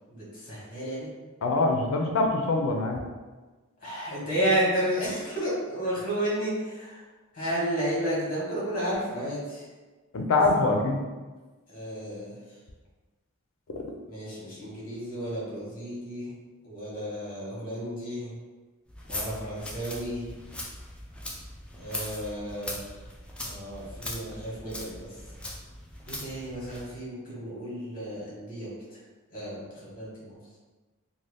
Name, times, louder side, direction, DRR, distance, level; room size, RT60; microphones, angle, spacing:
voice 1, 0.1-1.1 3.8-7.0 7.3-9.6 11.7-12.3 14.1-16.3 16.6-18.3 19.1-20.2 21.7-22.8 23.4-24.9 26.2-28.7 29.3-29.6 29.9-30.4, right 1 dB, 40° left, -6 dB, 1.2 m, -32 dB
voice 2, 1.4-3.0 10.1-11.0, left 3 dB, 65° left, 2 dB, 0.5 m, -24 dB
sound 1, 18.9-26.9, left 1 dB, 5° left, 0.3 m, -40 dB
2.7 x 2.2 x 3.3 m, 1.3 s
head